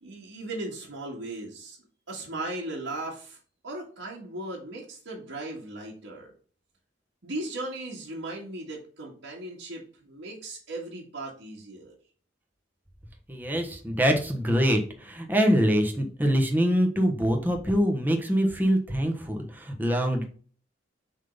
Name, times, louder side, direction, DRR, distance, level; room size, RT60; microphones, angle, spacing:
voice 1, 0.0-1.8 2.1-3.4 3.6-6.3 7.2-11.9, right 2 dB, 90° right, -4 dB, 1.9 m, -37 dB
voice 2, 13.3-20.2, equal, 10° right, 2 dB, 1.2 m, -24 dB
7.4 x 3.8 x 5.3 m, 0.42 s
head